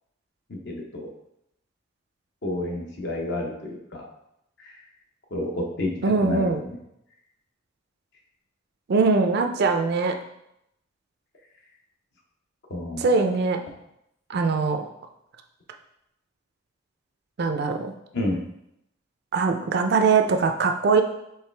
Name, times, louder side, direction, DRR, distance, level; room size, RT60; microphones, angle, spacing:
voice 1, 0.5-1.1 2.4-4.1 4.6-4.8 5.3-5.9 6.2-6.8 12.7-13.1 18.1-18.4, left 1 dB, 60° left, 0 dB, 0.8 m, -30 dB
voice 2, 6.0-6.6 8.9-10.2 13.0-13.6 14.3-14.9 17.4-17.9 19.3-21.0, right 4 dB, 55° right, 5 dB, 0.4 m, -22 dB
4.8 x 3.1 x 3.3 m, 0.81 s
head